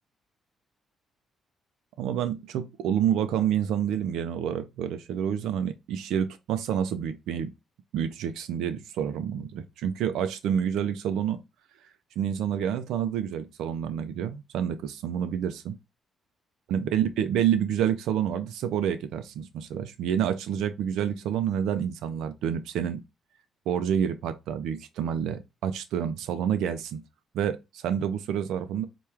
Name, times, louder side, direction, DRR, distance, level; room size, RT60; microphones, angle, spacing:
voice 1, 2.0-7.5 7.9-11.4 12.2-15.7 16.7-23.0 23.7-27.0 27.3-28.8, right 9 dB, 85° right, 0.4 m, -28 dB
4.5 x 2.2 x 3.4 m
cardioid pair, 90°, 0 cm